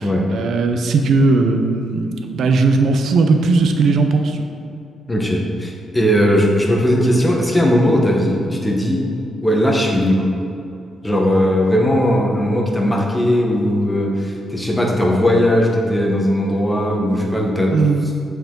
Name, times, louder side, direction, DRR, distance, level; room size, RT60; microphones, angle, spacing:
voice 1, 0.0-4.4 17.7-18.0, right 3 dB, 70° right, 6 dB, 0.6 m, -17 dB
voice 2, 5.1-9.0 9.4-10.3 11.0-17.7, equal, 10° left, -1 dB, 1.0 m, -17 dB
7.9 x 4.7 x 3.8 m, 2.6 s
cardioid pair, 130°, 0 cm